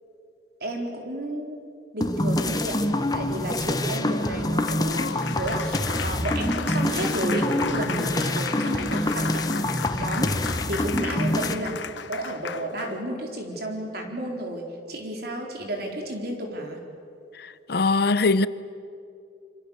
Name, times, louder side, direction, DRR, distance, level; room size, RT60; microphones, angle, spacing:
voice 1, 0.6-1.6 1.9-2.8 3.1-5.0 5.3-11.7 12.1-16.8, right 1 dB, 60° right, 4.1 m, -32 dB
sound 1, 2.0-11.5, left 1 dB, 20° left, 1.2 m, -26 dB
Applause, 3.8-13.0, left 6 dB, 80° left, 1.0 m, -35 dB
voice 2, 17.3-18.5, left 3 dB, 60° left, 0.7 m, -22 dB
26.5 x 26.0 x 7.2 m
head